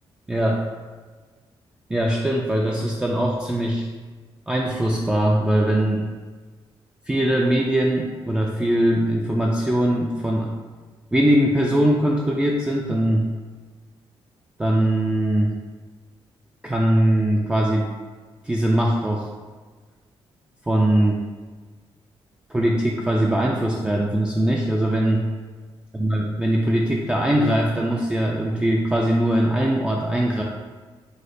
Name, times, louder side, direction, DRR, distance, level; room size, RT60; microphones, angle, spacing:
voice 1, 0.3-0.6 1.9-3.9 4.5-6.0 7.1-10.5 11.1-13.2 14.6-15.5 16.6-17.9 18.4-19.3 20.7-21.2 22.5-25.2 26.0-30.4, right 1 dB, 10° right, -2 dB, 0.3 m, -21 dB
3.1 x 2.1 x 4.0 m, 1.4 s
cardioid pair, 100°, 10 cm